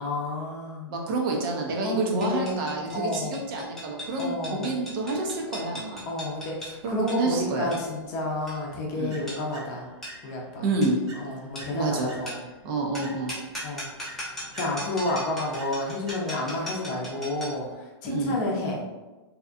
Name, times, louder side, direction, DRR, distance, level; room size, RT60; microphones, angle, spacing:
voice 1, 0.0-0.9 1.8-2.7 2.9-3.4 4.2-4.8 6.0-9.9 10.2-10.6 11.2-12.4 13.6-14.2 14.5-18.9, left 1 dB, 40° left, -1 dB, 0.6 m, -30 dB
voice 2, 0.9-6.0 6.8-7.7 8.9-9.2 10.6-11.0 11.7-12.1 12.6-13.3 18.1-18.4, right 2 dB, 50° right, 0 dB, 0.6 m, -28 dB
sound 1, 2.2-17.7, equal, 5° left, 0.7 m, -40 dB
sound 2, 9.1-10.6 11.1-12.6 13.0-16.6, right 1 dB, 70° right, 0.9 m, -48 dB
2.7 x 2.3 x 2.4 m, 1.2 s
hypercardioid pair, 135°, 15 cm